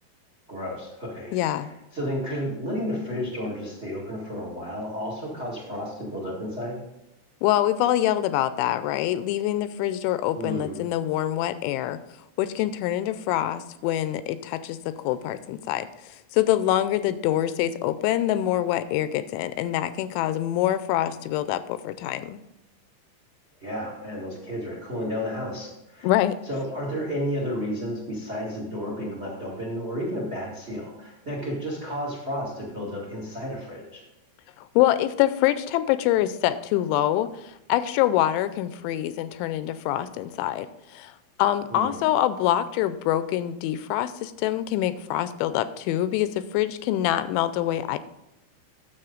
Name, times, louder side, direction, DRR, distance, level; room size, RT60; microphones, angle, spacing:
voice 1, 0.5-6.8 10.3-10.8 23.6-26.1 26.4-34.0 41.7-42.0, equal, 70° right, -3 dB, 0.6 m, -32 dB
voice 2, 1.3-1.7 7.4-12.0 12.4-15.9 16.3-22.4 26.0-26.3 34.6-40.7 40.9-41.1 41.4-48.0, left 13 dB, 85° left, 13 dB, 2.9 m, -25 dB
9.8 x 7.4 x 3.9 m, 0.89 s
omnidirectional pair, 5.4 m